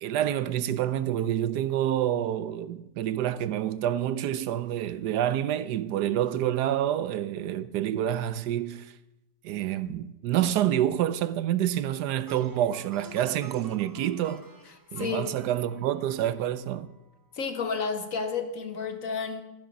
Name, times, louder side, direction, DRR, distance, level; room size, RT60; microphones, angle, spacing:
voice 1, 0.0-8.9 9.4-14.4 14.9-16.9, right 11 dB, 75° right, 1.1 m, -28 dB
Plucked string instrument, 11.7-17.0, right 4 dB, 25° right, 0.4 m, -49 dB
voice 2, 15.0-15.3 17.3-19.4, left 5 dB, 55° left, 1.4 m, -31 dB
13.0 x 11.0 x 5.2 m
omnidirectional pair, 1.8 m